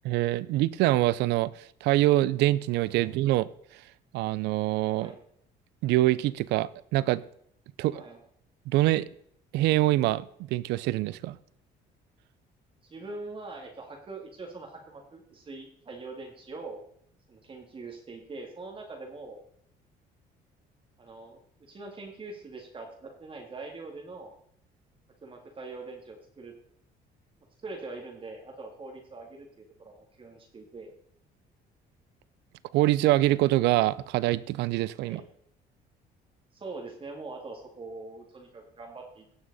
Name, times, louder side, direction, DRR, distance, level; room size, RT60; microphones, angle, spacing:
voice 1, 0.0-1.5 1.8-3.5 4.1-5.1 5.8-7.2 7.8-8.0 8.7-9.1 9.5-11.4 32.7-35.2, right 16 dB, 85° right, 19 dB, 0.5 m, -24 dB
voice 2, 12.8-16.9 17.3-19.4 21.0-24.3 25.2-26.5 27.6-30.9 35.0-35.2 36.5-39.2, right 3 dB, 30° right, 2 dB, 2.1 m, -43 dB
17.0 x 6.3 x 4.1 m, 0.65 s
cardioid pair, 110°, 17 cm